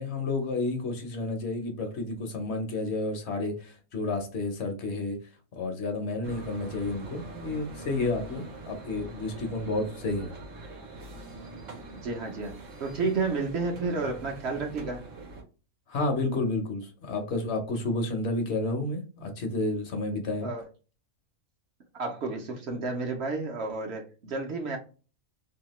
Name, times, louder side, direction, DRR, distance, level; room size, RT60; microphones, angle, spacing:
voice 1, 0.0-5.2 5.5-10.3 15.9-20.5, left 2 dB, 65° left, 4 dB, 0.9 m, -31 dB
sound 1, 6.2-15.4, right 2 dB, 85° right, 1.1 m, -43 dB
voice 2, 12.0-15.0 20.4-20.7 22.0-24.8, right 3 dB, 60° right, 1 dB, 0.9 m, -31 dB
2.8 x 2.2 x 2.9 m, 0.35 s
omnidirectional pair, 1.3 m